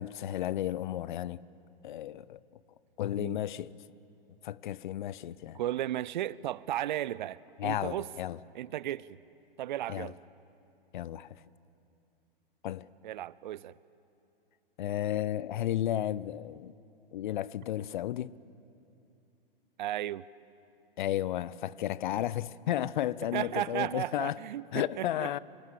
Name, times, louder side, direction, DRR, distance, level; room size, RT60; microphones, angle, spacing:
voice 1, 0.0-1.4 1.8-2.4 3.0-3.7 4.4-5.6 7.6-8.4 9.9-10.1 10.9-11.3 12.6-12.9 14.8-16.7 17.1-18.3 21.0-24.4 24.7-25.4, left 12 dB, 55° left, 0.6 m, -33 dB
voice 2, 5.5-8.1 8.5-9.2 9.6-10.2 13.0-13.8 19.8-20.3 23.3-25.4, right 13 dB, 55° right, 0.5 m, -35 dB
26.0 x 17.0 x 7.5 m
hypercardioid pair, 115°, 29 cm